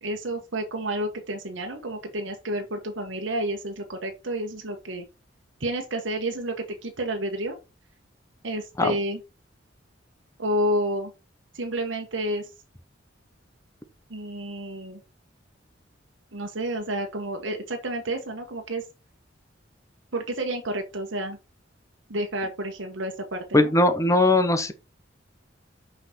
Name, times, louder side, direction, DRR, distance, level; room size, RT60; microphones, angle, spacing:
voice 1, 0.0-5.0 5.6-7.6 8.4-9.2 10.4-11.1 11.5-12.5 14.1-15.0 16.3-18.8 20.1-21.4 22.1-23.7, right 1 dB, 75° right, 1.3 m, -30 dB
voice 2, 23.5-24.7, left 2 dB, 15° left, 0.9 m, -19 dB
6.0 x 5.8 x 4.3 m
head